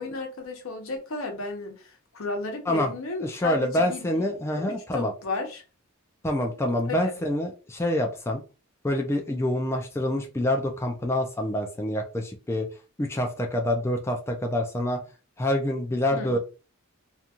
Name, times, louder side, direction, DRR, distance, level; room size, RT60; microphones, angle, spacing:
voice 1, 0.0-4.2 4.5-5.6 6.8-7.2 16.1-16.4, left 3 dB, 70° left, 0.8 m, -34 dB
voice 2, 3.2-5.1 6.2-8.4 8.8-12.7 13.0-15.0 15.4-16.4, left 1 dB, 10° left, 0.3 m, -26 dB
2.5 x 2.2 x 2.8 m
head